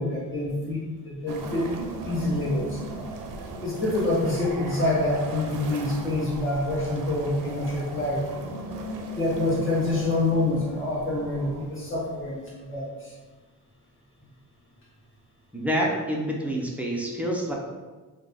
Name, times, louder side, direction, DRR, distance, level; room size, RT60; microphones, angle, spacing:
voice 1, 0.0-1.7 2.0-2.8 3.6-8.4 9.1-13.1, left 2 dB, 35° left, -5 dB, 1.0 m, -26 dB
sound 1, 1.3-12.4, right 2 dB, 70° right, 0.5 m, -37 dB
voice 2, 15.5-17.5, equal, 5° right, -2 dB, 0.3 m, -27 dB
3.5 x 2.1 x 3.3 m, 1.3 s
wide cardioid pair, 175°, 34 cm